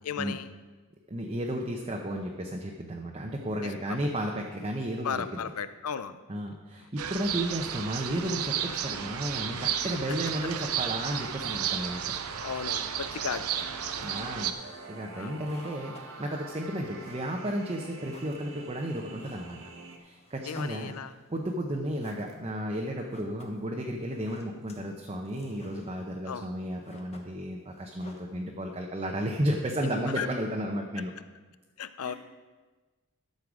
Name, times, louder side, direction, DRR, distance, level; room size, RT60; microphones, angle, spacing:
voice 1, 0.0-0.5 3.6-4.1 5.0-6.2 6.8-6.9 10.1-10.2 12.4-14.3 15.1-15.4 20.4-21.1 26.2-26.5 29.8-30.3 31.8-32.1, left 7 dB, 90° left, 13 dB, 0.5 m, -36 dB
voice 2, 1.1-5.2 6.3-12.0 14.0-14.5 14.9-15.9 16.2-19.6 20.0-20.9 21.3-31.1 32.0-32.1, right 1 dB, 25° right, 1 dB, 0.8 m, -33 dB
sound 1, 7.0-14.5, right 9 dB, 85° right, 0.6 m, -33 dB
sound 2, 7.2-20.0, right 3 dB, 65° right, 1.0 m, -46 dB
sound 3, 15.2-28.8, left 2 dB, 30° left, 1.1 m, -56 dB
12.5 x 6.6 x 4.8 m, 1.3 s
head